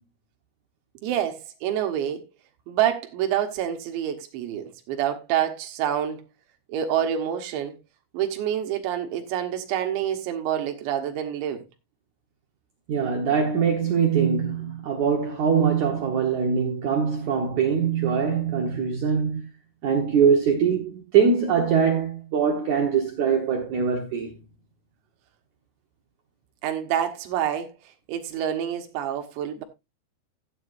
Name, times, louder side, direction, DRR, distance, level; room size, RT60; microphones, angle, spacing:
voice 1, 1.0-2.3 2.7-6.2 6.7-7.8 8.1-11.6 26.6-27.7 28.1-29.6, right 10 dB, 90° right, 3.6 m, -27 dB
voice 2, 12.9-19.4 19.8-24.3, right 6 dB, 70° right, 1.8 m, -22 dB
14.5 x 9.2 x 2.6 m
omnidirectional pair, 5.1 m